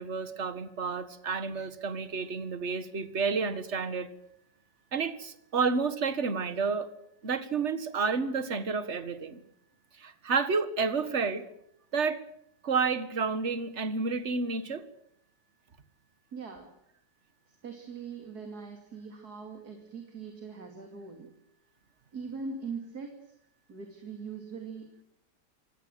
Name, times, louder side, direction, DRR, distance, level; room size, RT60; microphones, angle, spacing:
voice 1, 0.0-4.1 4.9-6.9 7.2-9.4 10.0-11.5 11.9-12.2 12.6-14.8, right 5 dB, 40° right, 13 dB, 1.8 m, -30 dB
voice 2, 16.3-16.7 17.6-21.3 22.1-23.2 23.7-25.0, right 5 dB, 60° right, 4 dB, 3.3 m, -41 dB
26.0 x 17.0 x 7.9 m, 0.74 s
omnidirectional pair, 1.9 m